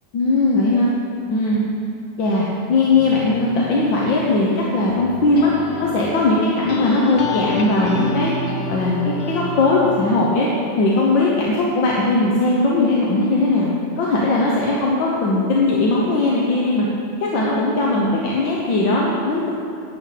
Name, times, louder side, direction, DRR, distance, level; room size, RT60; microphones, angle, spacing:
voice 1, 0.1-0.9 1.3-1.6 2.2-5.5 5.8-8.3 8.7-9.0 9.3-10.5 10.8-13.7 14.0-16.9 17.2-19.5, left 2 dB, 85° left, -4 dB, 1.9 m, -19 dB
sound 1, 3.0-10.1, left 2 dB, 60° left, 0.5 m, -29 dB
10.5 x 5.9 x 8.3 m, 2.5 s
omnidirectional pair, 2.0 m